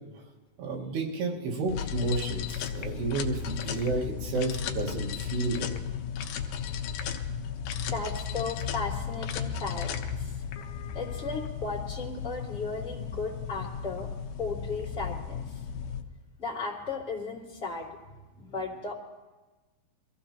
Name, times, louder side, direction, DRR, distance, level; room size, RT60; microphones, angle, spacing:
voice 1, 0.6-5.7, right 3 dB, 90° right, -2 dB, 3.7 m, -31 dB
sound 1, 1.7-16.0, left 7 dB, 80° left, 1.9 m, -35 dB
voice 2, 7.9-10.4 10.9-14.1 14.4-15.8 16.4-18.0 18.3-18.9, left 4 dB, 20° left, -6 dB, 1.8 m, -36 dB
23.0 x 15.5 x 2.9 m, 1.2 s
omnidirectional pair, 4.6 m